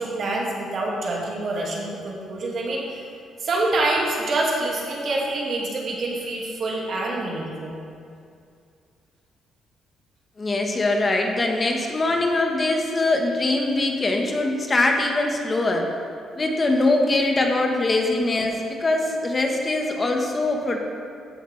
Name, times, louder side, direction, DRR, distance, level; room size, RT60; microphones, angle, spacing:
voice 1, 0.0-2.8 3.4-7.8, right 2 dB, 55° right, -2 dB, 2.0 m, -26 dB
voice 2, 10.4-15.9 16.3-20.8, left 2 dB, 30° left, 2 dB, 1.2 m, -22 dB
14.0 x 6.6 x 3.3 m, 2.4 s
cardioid pair, 90°, 0 cm